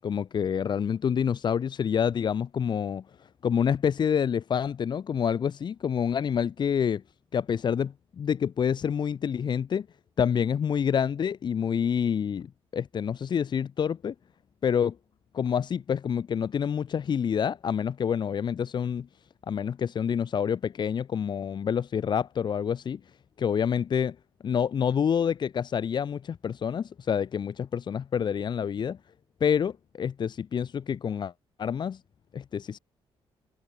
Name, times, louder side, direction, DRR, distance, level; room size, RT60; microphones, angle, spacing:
voice 1, 0.0-3.0 3.4-7.0 7.3-9.9 10.2-14.1 14.6-15.0 15.3-19.1 19.5-23.0 23.4-24.2 24.4-29.0 29.4-31.3 31.6-32.0 32.3-32.8, left 7 dB, 50° left, 6.2 m, -27 dB
cardioid pair, 145°, 10 cm